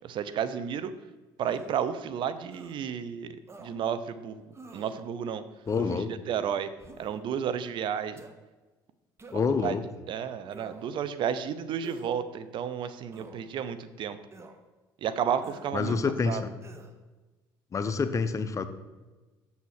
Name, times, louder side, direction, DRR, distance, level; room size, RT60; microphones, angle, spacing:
voice 1, 0.0-0.9 1.4-4.4 4.7-5.4 5.9-6.7 7.0-8.2 9.5-9.8 10.1-14.2 15.0-16.0 16.3-16.4, right 8 dB, 55° right, 13 dB, 0.6 m, -32 dB
sound 1, 1.4-1.9 2.5-2.8 3.5-3.7 4.5-5.0 5.7-6.0 6.8-7.2 8.2-8.3 9.2-9.6 10.5-11.0 11.8-12.2 13.1-13.4 14.3-14.6 15.4-15.7 16.6-17.0, right 3 dB, 30° right, 0.9 m, -49 dB
voice 2, 5.7-6.1 9.3-9.8 15.7-16.5 17.7-18.6, left 5 dB, 35° left, 11 dB, 0.6 m, -27 dB
6.9 x 4.2 x 6.4 m, 1.2 s
supercardioid pair, 80°, 10 cm